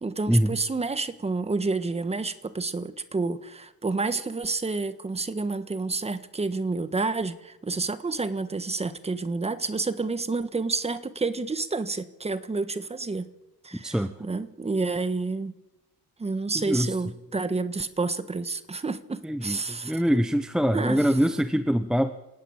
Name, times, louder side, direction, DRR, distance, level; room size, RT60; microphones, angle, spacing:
voice 1, 0.0-13.2 13.6-15.5 16.2-20.0 20.7-21.2, right 3 dB, 15° right, 12 dB, 1.4 m, -29 dB
voice 2, 16.5-16.9 19.2-19.6 19.8-22.1, equal, ahead, 9 dB, 0.9 m, -23 dB
28.0 x 18.0 x 8.9 m, 1.0 s
cardioid pair, 145°, 36 cm